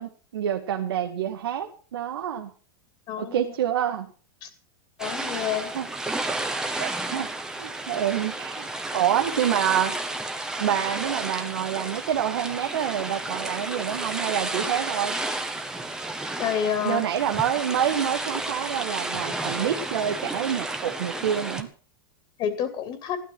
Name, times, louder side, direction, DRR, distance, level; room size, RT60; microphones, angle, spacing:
voice 1, 0.0-2.5 3.2-4.1 5.3-5.4 5.8-5.9 6.8-7.3 7.6-10.0 10.6-15.2 16.8-21.7, right 10 dB, 90° right, 4 dB, 1.9 m, -27 dB
voice 2, 3.1-3.5 4.4-4.5 5.0-5.7 16.4-17.0 22.4-23.2, left 8 dB, 40° left, 9 dB, 2.7 m, -29 dB
sound 1, 5.0-21.6, right 2 dB, 5° right, 1.6 m, -32 dB
15.0 x 12.5 x 6.2 m, 0.38 s
supercardioid pair, 145°, 12 cm